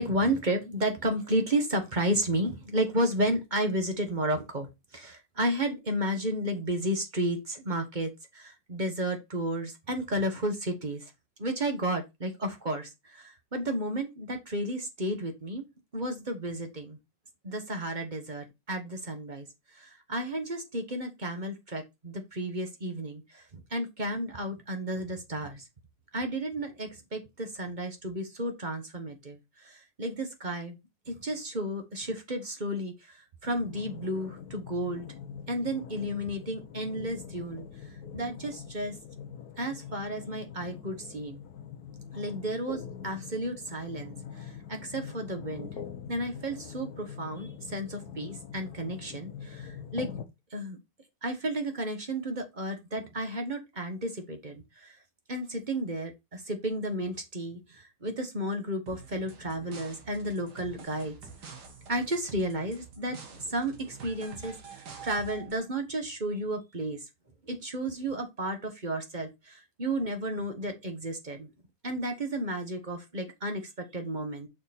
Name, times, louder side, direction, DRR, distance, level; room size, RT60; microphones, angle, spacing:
voice 1, 0.0-11.1 11.4-15.6 15.9-17.0 17.4-19.5 19.7-25.6 26.1-30.8 31.1-35.1 35.5-38.9 39.6-41.4 42.1-45.7 46.1-50.1 50.5-50.8 51.2-55.0 55.3-61.2 61.9-67.0 67.5-71.5 71.8-74.5, right 1 dB, 30° right, 1.2 m, -32 dB
sound 1, 33.4-50.3, left 7 dB, 60° left, 1.2 m, -44 dB
sound 2, 58.9-65.6, right 5 dB, 60° right, 2.1 m, -47 dB
6.2 x 4.6 x 4.2 m
omnidirectional pair, 2.0 m